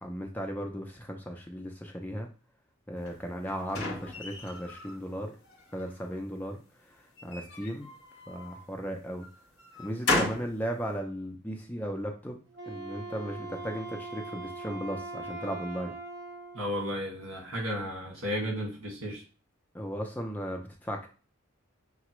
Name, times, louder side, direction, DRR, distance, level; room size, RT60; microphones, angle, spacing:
voice 1, 0.0-2.3 2.9-5.3 5.7-6.6 6.9-7.9 8.3-9.3 9.8-15.9 19.7-21.1, equal, 10° left, 2 dB, 0.5 m, -36 dB
sound 1, 3.1-5.0 5.4-6.2 7.2-8.6 9.2-10.5, left 2 dB, 50° left, 1.1 m, -34 dB
Wind instrument woodwind instrument, 12.5-16.6, right 3 dB, 55° right, 0.9 m, -41 dB
voice 2, 16.5-19.2, equal, 75° right, 0 dB, 1.7 m, -33 dB
5.8 x 2.3 x 3.0 m, 0.36 s
head